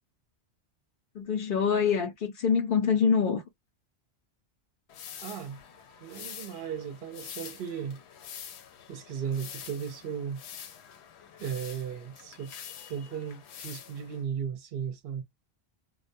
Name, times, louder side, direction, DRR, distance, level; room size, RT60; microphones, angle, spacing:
voice 1, 1.1-3.4, left 6 dB, 60° left, 0.7 m, -25 dB
sound 1, 4.9-14.2, left 8 dB, 85° left, 0.9 m, -46 dB
voice 2, 5.2-5.6 6.0-8.0 8.9-10.4 11.4-12.5 12.9-15.2, right 7 dB, 70° right, 0.8 m, -36 dB
2.2 x 2.1 x 2.6 m
omnidirectional pair, 1.1 m